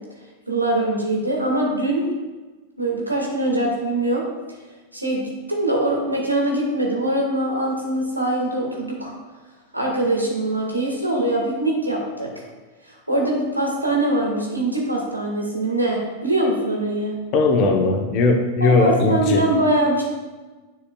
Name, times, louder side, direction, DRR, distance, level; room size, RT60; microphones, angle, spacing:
voice 1, 0.5-2.1 2.8-4.2 4.9-9.1 9.7-12.4 13.1-17.1 18.6-20.0, right 1 dB, 85° right, -1 dB, 1.7 m, -22 dB
voice 2, 17.3-19.4, left 3 dB, 40° left, 4 dB, 1.0 m, -18 dB
9.8 x 5.6 x 2.3 m, 1.2 s
figure-of-eight pair, 90°, 0 cm